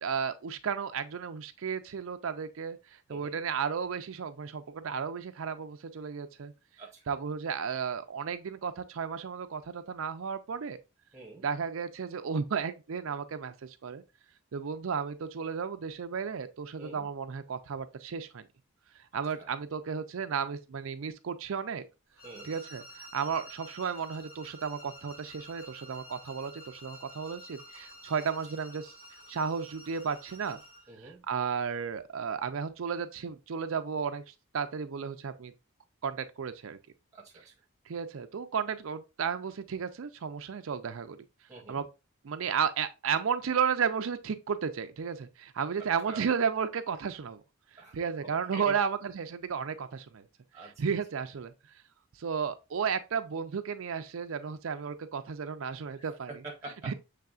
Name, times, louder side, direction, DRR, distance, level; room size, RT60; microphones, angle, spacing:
voice 1, 0.0-6.5 7.1-10.8 11.4-14.0 14.5-18.4 19.1-21.8 22.4-28.9 29.3-30.6 31.0-34.2 34.5-35.5 36.0-36.8 37.9-41.2 41.7-41.8 42.2-47.4 47.9-50.2 50.8-51.5 52.2-56.3 56.9-57.0, right 6 dB, 70° right, 0.5 m, -33 dB
voice 2, 3.1-3.5 6.8-7.2 11.1-11.5 16.8-17.1 19.4-19.5 22.2-22.5 30.9-31.2 37.1-37.5 41.5-41.8 46.1-46.3 47.8-48.0 48.2-48.8 50.5-50.7 55.9-56.9, right 3 dB, 15° right, 0.9 m, -46 dB
sound 1, 22.2-30.9, equal, 65° left, 3.0 m, -50 dB
6.7 x 3.3 x 2.4 m
head